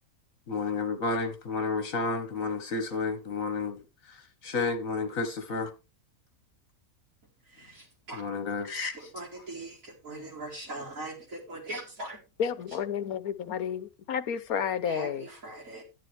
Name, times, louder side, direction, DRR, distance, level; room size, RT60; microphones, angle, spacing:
voice 1, 0.5-3.8 4.4-5.7 8.1-8.9, left 4 dB, 65° left, 2.1 m, -31 dB
voice 2, 7.6-8.2 8.9-12.2 14.9-15.8, right 2 dB, 65° right, 4.6 m, -41 dB
voice 3, 12.4-15.3, left 8 dB, 85° left, 1.4 m, -31 dB
11.5 x 10.5 x 3.4 m
omnidirectional pair, 1.5 m